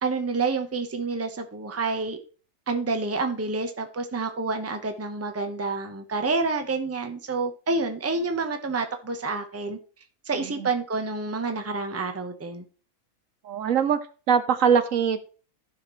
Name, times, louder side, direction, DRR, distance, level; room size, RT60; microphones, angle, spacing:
voice 1, 0.0-2.2 2.7-9.8 10.2-12.6, right 3 dB, 10° right, 5 dB, 0.8 m, -28 dB
voice 2, 10.3-10.7 13.4-14.0 14.3-15.2, right 7 dB, 65° right, 10 dB, 1.1 m, -22 dB
14.5 x 5.9 x 3.1 m, 0.38 s
omnidirectional pair, 1.5 m